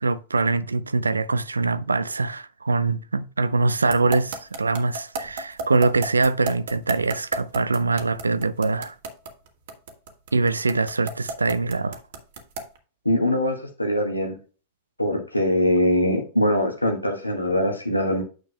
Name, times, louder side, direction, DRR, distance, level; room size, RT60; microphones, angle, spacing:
voice 1, 0.0-8.9 10.3-12.0, right 3 dB, 80° right, 0.5 m, -23 dB
sound 1, 3.9-12.8, right 3 dB, 55° right, 1.6 m, -32 dB
voice 2, 13.0-14.4 15.0-18.2, equal, 85° left, 1.5 m, -22 dB
9.5 x 6.6 x 2.2 m
figure-of-eight pair, 90°, 0 cm